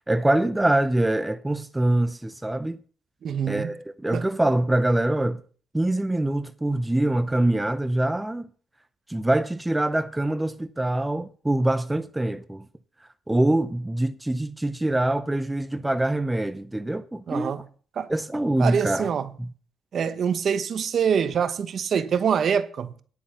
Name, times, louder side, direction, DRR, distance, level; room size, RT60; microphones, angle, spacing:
voice 1, 0.1-2.8 3.5-5.4 5.7-8.5 9.1-12.6 13.3-17.5 18.1-19.1 19.4-19.5, right 1 dB, 10° right, 0.6 m, -24 dB
voice 2, 3.2-3.7 4.1-4.3 17.3-17.6 18.0-18.1 18.6-19.3 19.9-22.9, right 7 dB, 55° right, 1.0 m, -25 dB
10.0 x 8.2 x 5.7 m
cardioid pair, 90°, 0 cm